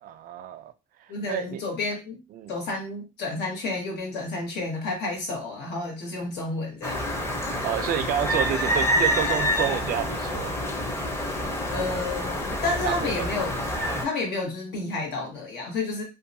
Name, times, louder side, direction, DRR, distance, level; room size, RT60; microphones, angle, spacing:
voice 1, 0.0-0.7 1.3-1.6 2.3-2.5 7.6-10.5 12.8-13.2, right 10 dB, 60° right, 0.4 m, -29 dB
voice 2, 1.1-2.2 2.5-7.0 11.7-13.6 14.0-16.0, left 3 dB, 80° left, 1.2 m, -30 dB
sound 1, 6.8-14.1, equal, 15° left, 0.6 m, -27 dB
2.7 x 2.3 x 2.6 m
cardioid pair, 110°, 17 cm